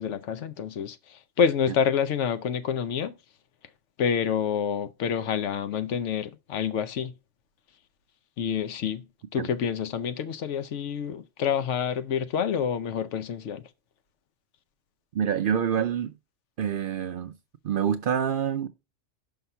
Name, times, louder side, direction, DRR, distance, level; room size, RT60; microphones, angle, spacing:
voice 1, 0.0-3.1 4.0-7.1 8.4-9.0 9.3-13.6, left 7 dB, 75° left, 1.0 m, -28 dB
voice 2, 15.1-16.1 16.6-17.3 17.6-18.7, right 8 dB, 60° right, 0.6 m, -26 dB
5.7 x 5.5 x 5.6 m
omnidirectional pair, 1.2 m